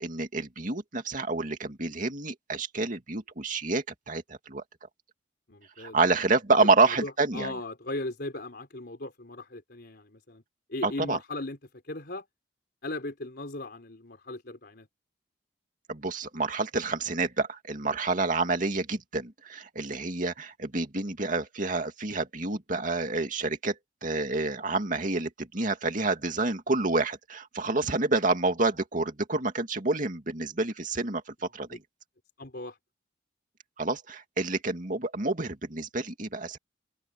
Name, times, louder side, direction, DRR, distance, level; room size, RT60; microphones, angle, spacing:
voice 1, 0.0-4.6 5.8-7.5 10.8-11.2 15.9-23.7 24.0-31.8 33.8-36.6, right 3 dB, 45° right, 2.4 m, -28 dB
voice 2, 5.5-6.2 6.8-10.4 10.7-11.6 11.8-12.3 12.8-14.9 32.4-32.8, left 2 dB, 60° left, 4.0 m, -38 dB
head